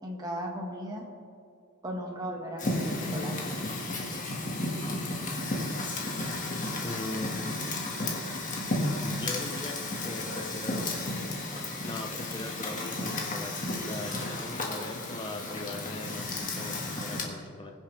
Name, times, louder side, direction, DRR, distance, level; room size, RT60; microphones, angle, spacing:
voice 1, 0.0-1.1 1.8-3.4 8.8-8.9, equal, 20° right, 0 dB, 1.7 m, -35 dB
Fire, 2.6-17.2, left 2 dB, 40° left, 1.8 m, -33 dB
voice 2, 6.8-7.4 9.0-9.7 10.0-10.8 11.8-17.7, left 2 dB, 25° left, 3 dB, 0.8 m, -40 dB
21.5 x 7.2 x 3.4 m, 2.4 s
head